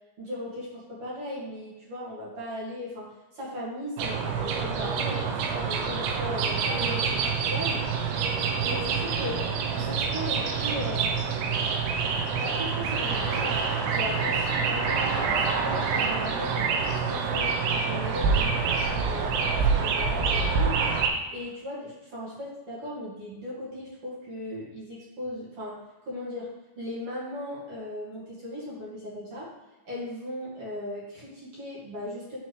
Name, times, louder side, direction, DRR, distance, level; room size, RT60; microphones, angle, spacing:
voice 1, 0.2-3.1 3.3-7.8 8.6-11.4 12.4-20.8 21.3-26.5 26.8-29.5 29.8-32.4, left 1 dB, 45° right, -7 dB, 2.0 m, -37 dB
sound 1, 4.0-21.1, right 5 dB, 80° right, 2.7 m, -26 dB
10.0 x 4.3 x 3.2 m, 1.1 s
omnidirectional pair, 5.2 m